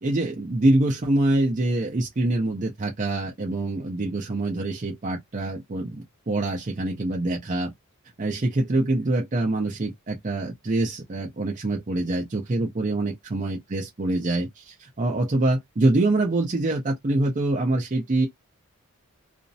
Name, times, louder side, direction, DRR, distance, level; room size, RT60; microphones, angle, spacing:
voice 1, 0.0-7.7 8.2-18.3, right 2 dB, 35° right, 0.6 m, -25 dB
2.5 x 2.0 x 2.6 m
head